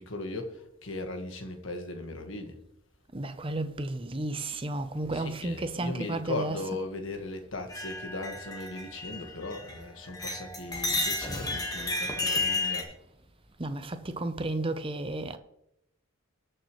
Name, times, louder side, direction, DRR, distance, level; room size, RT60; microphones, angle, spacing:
voice 1, 0.0-2.6 5.1-12.9, left 2 dB, 65° left, 1.6 m, -38 dB
voice 2, 3.1-6.8 13.6-15.4, right 2 dB, 25° right, 0.7 m, -33 dB
sound 1, 7.7-9.8 10.1-12.8, left 2 dB, 15° left, 1.5 m, -32 dB
19.0 x 6.6 x 3.2 m
head